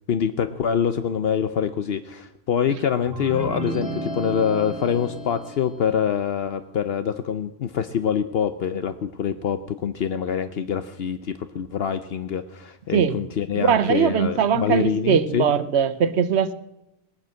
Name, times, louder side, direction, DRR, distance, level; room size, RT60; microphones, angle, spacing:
voice 1, 0.1-15.5, left 8 dB, 70° left, 11 dB, 0.9 m, -25 dB
sound 1, 3.1-5.9, right 2 dB, 5° right, 4.2 m, -33 dB
voice 2, 13.5-16.5, right 7 dB, 80° right, 12 dB, 1.1 m, -21 dB
20.0 x 9.6 x 7.6 m, 0.90 s
omnidirectional pair, 1.1 m